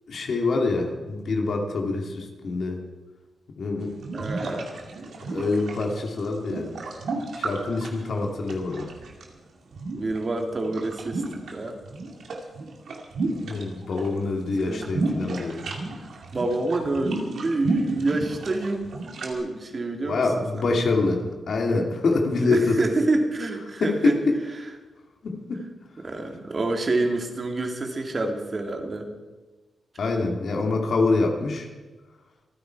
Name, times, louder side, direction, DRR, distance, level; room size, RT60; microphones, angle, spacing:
voice 1, 0.1-2.8 3.6-3.9 5.3-6.7 7.4-8.9 13.4-15.7 20.1-22.8 23.8-24.4 25.2-25.6 30.0-31.7, left 3 dB, 70° left, 2 dB, 2.6 m, -25 dB
sound 1, 3.8-9.2 9.7-11.5 11.8-14.1 14.3-19.3, right 3 dB, 75° right, 2.4 m, -32 dB
voice 2, 4.1-4.7 10.0-11.8 13.3-13.4 14.6-14.9 16.0-16.1 16.3-18.9 19.2-20.3 20.5-20.7 22.4-24.2 26.0-29.1, right 2 dB, 45° right, 4 dB, 2.5 m, -27 dB
27.0 x 9.5 x 4.7 m, 1.2 s
supercardioid pair, 50°, 0 cm